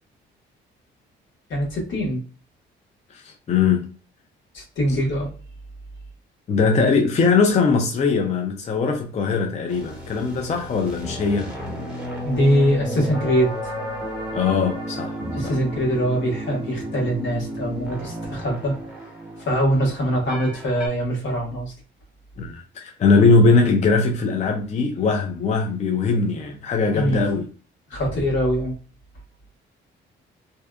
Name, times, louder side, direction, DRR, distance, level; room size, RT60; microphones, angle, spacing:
voice 1, 1.5-2.2 4.5-5.3 12.2-13.7 15.3-18.8 19.4-21.7 26.9-27.2 27.9-28.8, equal, 70° left, 1.3 m, -23 dB
voice 2, 3.1-3.9 6.5-11.5 14.3-15.6 22.4-27.5, left 4 dB, 35° left, 0.4 m, -20 dB
sound 1, 9.7-20.9, right 1 dB, 5° right, 1.0 m, -33 dB
2.7 x 2.2 x 2.2 m
cardioid pair, 90°, 20 cm